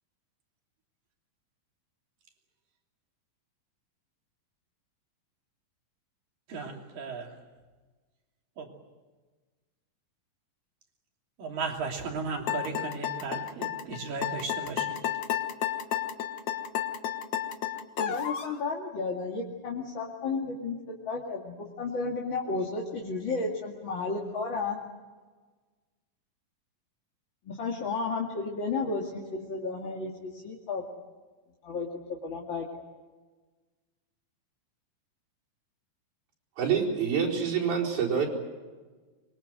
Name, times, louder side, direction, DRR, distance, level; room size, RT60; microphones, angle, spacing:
voice 1, 6.5-7.4 8.6-8.8 11.4-15.1, right 4 dB, 70° right, 4.5 m, -36 dB
sound 1, 12.5-18.5, left 10 dB, 60° left, 2.4 m, -31 dB
voice 2, 18.0-20.8 21.0-24.8 27.4-30.8 31.6-32.8, left 4 dB, 35° left, 2.7 m, -33 dB
voice 3, 36.6-38.3, right 7 dB, 85° right, 6.6 m, -26 dB
25.0 x 23.5 x 7.9 m
omnidirectional pair, 4.2 m